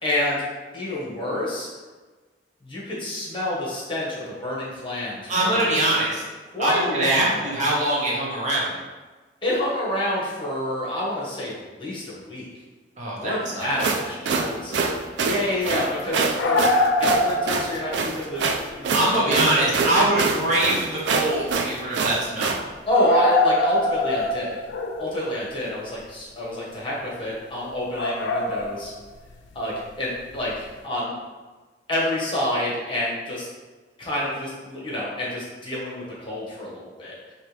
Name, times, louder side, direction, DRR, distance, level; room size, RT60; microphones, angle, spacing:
voice 1, 0.0-0.4 0.7-1.7 2.6-6.1 6.5-7.5 9.4-12.5 13.2-18.9 19.2-20.0 22.9-24.6 25.0-28.9 29.5-31.1 31.9-33.5 34.0-37.3, left 1 dB, 30° left, -5 dB, 1.1 m, -28 dB
voice 2, 5.3-6.2 6.6-8.7 13.0-13.7 18.9-22.5, right 1 dB, 45° right, -5 dB, 0.9 m, -23 dB
sound 1, 13.6-22.6, right 4 dB, 75° right, 0.4 m, -25 dB
sound 2, 16.3-18.0 18.3-18.5 19.6-19.7 20.2-20.3 20.5-20.6 22.9-25.2 27.9-28.9 30.4-30.5, left 2 dB, 85° left, 0.4 m, -23 dB
4.4 x 2.8 x 3.2 m, 1.3 s
head